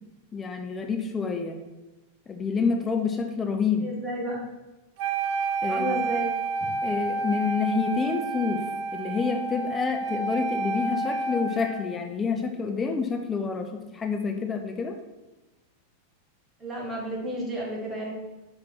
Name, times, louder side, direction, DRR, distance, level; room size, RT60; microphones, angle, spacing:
voice 1, 0.3-1.6 2.3-3.9 5.6-5.9 6.8-8.6 8.9-15.0, left 5 dB, 20° left, 4 dB, 0.7 m, -28 dB
voice 2, 3.8-4.4 5.7-6.3 16.6-18.1, right 1 dB, 15° right, -3 dB, 2.2 m, -32 dB
Wind instrument woodwind instrument, 5.0-11.9, right 3 dB, 45° right, 0.6 m, -30 dB
5.9 x 4.8 x 5.9 m, 1.1 s
figure-of-eight pair, 90°, 0 cm